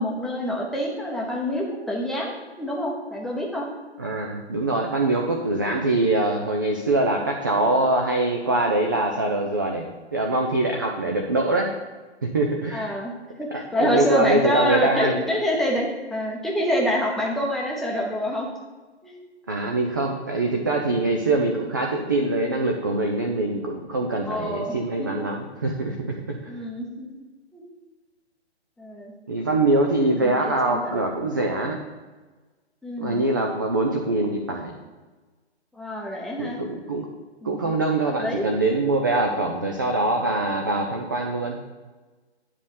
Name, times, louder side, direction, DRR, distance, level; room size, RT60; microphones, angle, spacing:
voice 1, 0.0-2.3 2.6-3.7 12.7-13.1 13.4-18.5 19.0-19.2 24.3-25.1 26.5-27.1 27.5-27.6 28.8-29.1 30.1-31.1 32.8-33.3 35.7-36.6 37.4-37.7 38.2-38.5, left 1 dB, ahead, -3 dB, 0.8 m, -26 dB
voice 2, 4.0-9.9 10.1-11.7 12.2-12.9 13.5-15.2 19.5-26.6 29.3-31.8 33.0-34.7 36.4-37.1 37.4-41.6, right 2 dB, 20° right, 2 dB, 0.4 m, -23 dB
9.7 x 4.0 x 6.9 m, 1.3 s
figure-of-eight pair, 130°, 34 cm